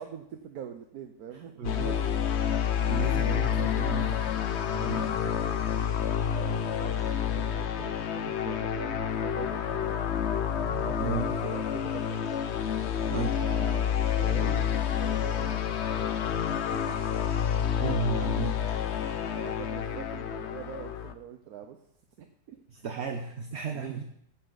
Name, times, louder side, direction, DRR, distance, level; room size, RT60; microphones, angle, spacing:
voice 1, 0.0-2.0 6.3-10.2 10.8-12.4 13.3-15.6 16.0-16.9 19.2-21.8 22.2-22.6 23.7-24.0, right 8 dB, 60° right, 6 dB, 1.2 m, -43 dB
voice 2, 1.3-2.0 2.8-5.4 10.5-11.3 13.1-13.4 17.8-18.6 22.7-24.0, right 5 dB, 45° right, 5 dB, 1.0 m, -34 dB
sound 1, 1.6-21.1, left 9 dB, 60° left, 0.7 m, -29 dB
15.5 x 10.0 x 4.0 m, 0.71 s
omnidirectional pair, 2.0 m